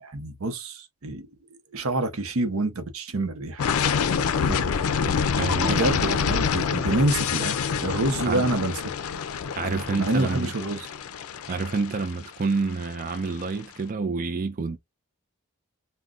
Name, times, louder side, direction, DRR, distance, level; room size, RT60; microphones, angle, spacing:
voice 1, 0.0-1.3 1.7-3.6 5.6-8.7 10.0-10.9, right 2 dB, 85° right, 0.8 m, -27 dB
sound 1, 3.6-13.4, left 6 dB, 85° left, 0.4 m, -26 dB
voice 2, 5.0-6.0 8.3-8.5 9.6-10.5 11.5-14.8, right 4 dB, 40° right, 0.4 m, -28 dB
2.4 x 2.2 x 3.7 m
head